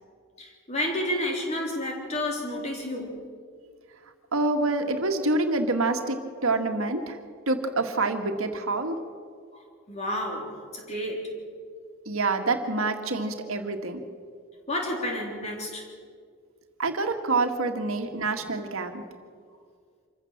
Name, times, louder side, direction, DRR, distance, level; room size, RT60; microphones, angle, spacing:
voice 1, 0.4-3.3 9.5-11.4 14.7-15.9 18.0-18.1, left 1 dB, 30° left, 3.7 m, -31 dB
voice 2, 4.3-7.2 7.5-9.0 12.1-14.0 16.8-19.0, right 3 dB, 70° right, 1.9 m, -27 dB
26.0 x 15.0 x 7.4 m
head